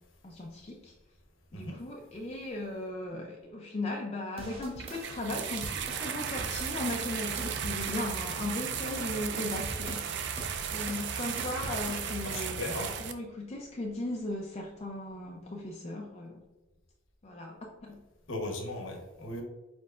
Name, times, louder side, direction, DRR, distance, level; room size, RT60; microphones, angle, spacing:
voice 1, 0.2-0.9 1.5-10.0 10.7-16.4 17.2-18.0, left 2 dB, 30° left, 0 dB, 0.4 m, -37 dB
sound 1, 4.4-8.2 8.6-12.2, right 1 dB, 30° right, 0.7 m, -44 dB
sound 2, 4.8-13.1, right 7 dB, 55° right, 0.4 m, -35 dB
voice 2, 12.2-13.0 18.3-19.4, left 1 dB, 75° left, 1 dB, 1.0 m, -37 dB
4.6 x 4.5 x 2.4 m, 1.1 s
head